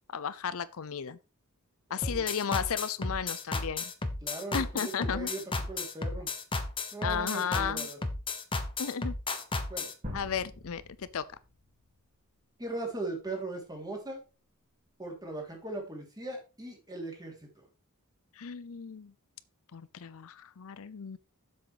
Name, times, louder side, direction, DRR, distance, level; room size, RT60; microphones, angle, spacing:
voice 1, 0.1-1.2 1.9-3.9 4.5-5.3 7.0-7.9 8.8-9.1 10.1-11.2 18.4-19.1 19.7-21.2, left 7 dB, 65° left, 0.6 m, -34 dB
voice 2, 1.9-2.2 4.2-5.4 5.7-6.3 6.9-8.0 9.7-9.9 12.6-14.2 15.0-17.7, right 2 dB, 20° right, 3.1 m, -39 dB
sound 1, 2.0-9.9, left 3 dB, 25° left, 1.1 m, -33 dB
sound 2, 10.0-12.0, left 1 dB, 35° right, 3.8 m, -44 dB
7.7 x 6.5 x 4.9 m
head